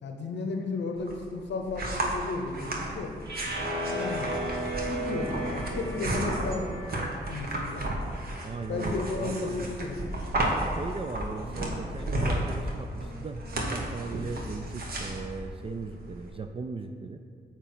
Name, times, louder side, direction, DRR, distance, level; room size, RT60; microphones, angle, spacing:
voice 1, 0.0-3.1 3.9-4.3 4.9-6.8 7.3-7.9 8.7-10.0, left 3 dB, 85° left, 3 dB, 0.7 m, -34 dB
sound 1, 1.0-16.3, right 1 dB, 60° right, 1.2 m, -33 dB
sound 2, 3.3-9.5, right 1 dB, 75° right, 1.5 m, -36 dB
voice 2, 8.4-9.6 10.8-17.2, right 4 dB, 30° right, 5 dB, 0.4 m, -37 dB
sound 3, 10.1-15.9, left 2 dB, 30° left, 0.6 m, -45 dB
8.6 x 3.0 x 6.0 m, 2.1 s
cardioid pair, 80°, 18 cm